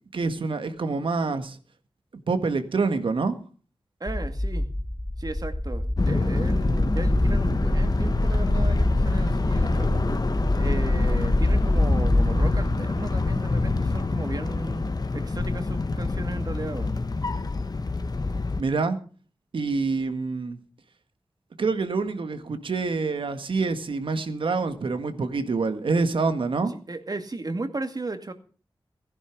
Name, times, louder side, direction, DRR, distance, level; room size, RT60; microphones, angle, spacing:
voice 1, 0.1-1.6 2.3-3.4 18.6-19.0 19.5-20.6 21.6-26.7, right 4 dB, 85° right, 1.7 m, -26 dB
voice 2, 4.0-4.7 5.2-10.0 10.6-16.9 26.9-28.3, right 2 dB, 50° right, 2.2 m, -35 dB
sound 1, 4.1-12.8, left 1 dB, 10° left, 1.1 m, -25 dB
sound 2, 6.0-18.6, left 3 dB, 50° left, 1.2 m, -26 dB
16.0 x 11.0 x 5.1 m
cardioid pair, 45°, 9 cm